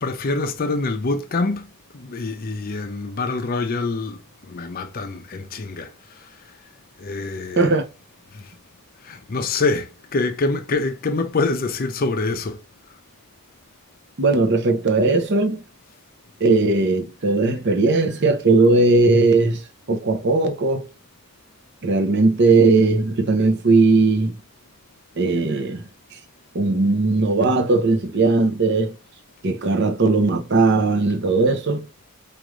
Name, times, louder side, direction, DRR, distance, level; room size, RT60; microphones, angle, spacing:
voice 1, 0.0-1.7 1.9-5.9 7.0-7.8 8.3-8.4 9.0-12.6, left 3 dB, 40° left, 0.5 m, -25 dB
voice 2, 14.2-15.6 16.4-19.6 19.9-20.8 21.8-24.4 25.2-25.8 26.5-28.9 29.4-31.8, right 3 dB, 55° right, 0.7 m, -18 dB
4.9 x 2.5 x 3.1 m
head